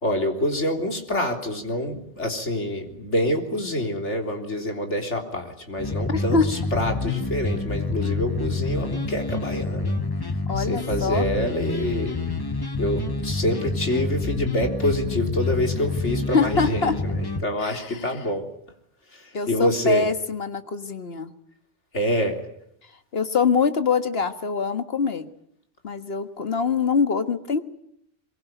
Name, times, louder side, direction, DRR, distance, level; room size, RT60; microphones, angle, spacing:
voice 1, 0.0-10.0 10.6-12.2 12.8-18.5 19.1-20.1 21.9-22.4, left 1 dB, 80° left, 3 dB, 3.9 m, -26 dB
sound 1, 5.8-17.4, left 3 dB, 20° left, 1.0 m, -27 dB
voice 2, 6.1-6.5 10.5-11.3 16.3-17.0 17.6-18.0 19.3-21.3 23.1-25.3 25.8-27.6, left 5 dB, 60° left, 9 dB, 1.9 m, -24 dB
23.0 x 22.5 x 9.2 m, 0.74 s
omnidirectional pair, 1.2 m